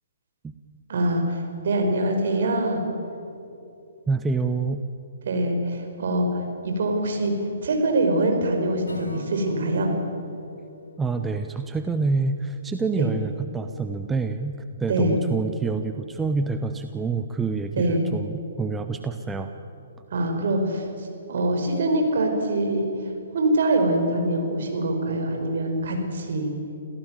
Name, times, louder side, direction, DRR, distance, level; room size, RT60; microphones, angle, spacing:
voice 1, 0.9-2.8 5.2-7.3 7.6-9.9 13.0-13.1 14.9-15.2 17.8-18.0 20.1-22.9 23.3-26.5, right 1 dB, 55° right, 4 dB, 5.0 m, -24 dB
voice 2, 4.1-4.8 11.0-19.5, right 4 dB, 10° right, 7 dB, 0.9 m, -27 dB
Acoustic guitar / Strum, 8.9-12.2, left 2 dB, 85° left, 3.7 m, -43 dB
27.5 x 16.0 x 9.1 m, 2.7 s
figure-of-eight pair, 125°, 0 cm